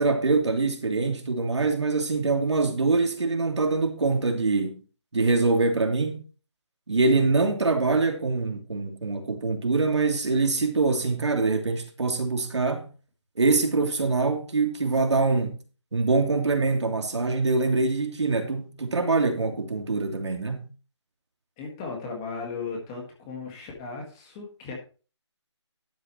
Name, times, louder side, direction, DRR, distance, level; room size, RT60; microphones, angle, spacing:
voice 1, 0.0-4.8 5.1-6.2 6.9-12.9 13.4-15.6 15.9-20.7, right 3 dB, 70° right, 2.9 m, -24 dB
voice 2, 21.6-24.7, left 4 dB, 10° left, 1.6 m, -36 dB
12.5 x 9.4 x 3.0 m
hypercardioid pair, 180°, 15 cm